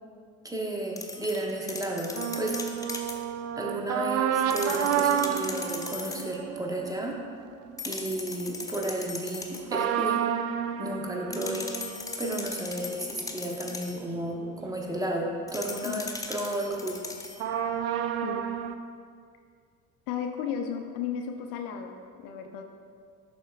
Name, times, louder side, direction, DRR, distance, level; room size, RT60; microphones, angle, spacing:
voice 1, 0.4-3.0 3.5-7.2 7.8-10.3 10.8-11.7 12.2-17.0, right 1 dB, 10° right, 0 dB, 1.0 m, -33 dB
sound 1, 1.0-3.2 4.4-6.3 7.8-9.7 11.3-14.0 15.5-17.5, left 3 dB, 10° left, 0.5 m, -38 dB
sound 2, 2.1-8.0 9.7-15.0 15.4-15.5 17.4-18.8, right 9 dB, 40° right, 0.4 m, -31 dB
voice 2, 20.1-22.7, left 7 dB, 55° left, 4 dB, 0.6 m, -34 dB
11.0 x 4.3 x 2.4 m, 2.1 s
figure-of-eight pair, 60°, 41 cm